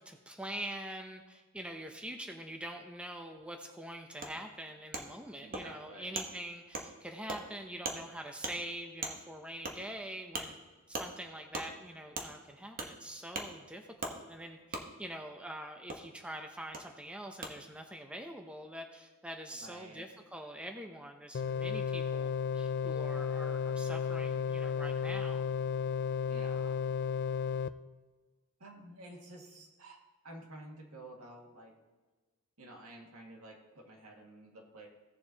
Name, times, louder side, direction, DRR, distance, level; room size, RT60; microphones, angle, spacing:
voice 1, 0.1-10.6 10.9-25.4, right 1 dB, 5° right, 4 dB, 0.6 m, -44 dB
Wood, 4.2-4.3 4.9-5.0 5.5-5.6 6.1-6.3 6.7-6.9 7.3-7.4 7.8-8.0 8.4-8.5 9.0-9.1 9.6-9.8 10.3-10.5 10.9-11.1 11.5-11.7 12.1-12.3 12.8-12.9 13.3-13.5 14.0-14.1 14.7-14.8 15.9-16.0 16.7-16.8 17.4-17.5, right 3 dB, 40° right, 1.1 m, -37 dB
voice 2, 5.4-6.2 19.5-20.1 26.3-26.8 28.6-30.0 30.2-31.7 32.6-34.9, right 1 dB, 80° right, 0 dB, 1.9 m, -51 dB
sound 1, 21.3-27.7, left 7 dB, 50° left, 0.3 m, -33 dB
16.5 x 7.1 x 2.9 m, 1.3 s
head